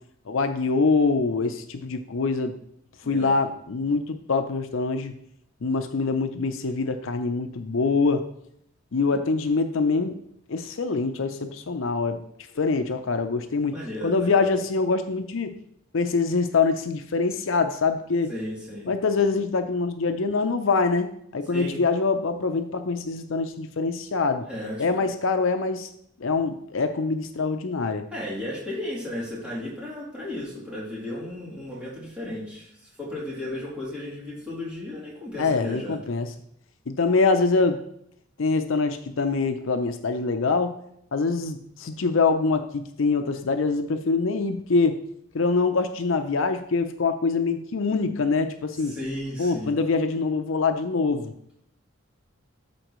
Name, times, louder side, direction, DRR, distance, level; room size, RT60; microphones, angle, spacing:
voice 1, 0.3-2.6 3.1-5.1 5.6-8.2 8.9-10.2 10.5-12.2 12.6-13.7 14.0-15.5 15.9-18.3 18.9-24.5 24.8-25.9 26.2-28.1 35.4-36.3 36.9-37.8 38.4-40.8 41.1-45.0 45.3-48.9 49.4-51.3, left 4 dB, 70° left, 8 dB, 0.6 m, -24 dB
voice 2, 3.0-3.4 9.1-9.2 13.7-14.5 18.3-18.9 21.5-21.8 24.4-25.1 28.1-36.0 48.7-49.7, left 1 dB, 5° right, -8 dB, 2.9 m, -34 dB
13.0 x 4.5 x 3.1 m, 0.72 s
head